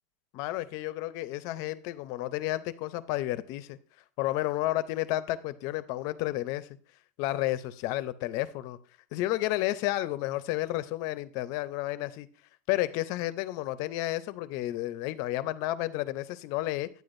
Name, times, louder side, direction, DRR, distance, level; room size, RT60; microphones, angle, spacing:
voice 1, 0.3-3.8 4.2-6.7 7.2-8.8 9.1-12.3 12.7-16.9, left 16 dB, 45° left, 0.5 m, -31 dB
9.6 x 9.3 x 2.6 m
supercardioid pair, 160°, 8 cm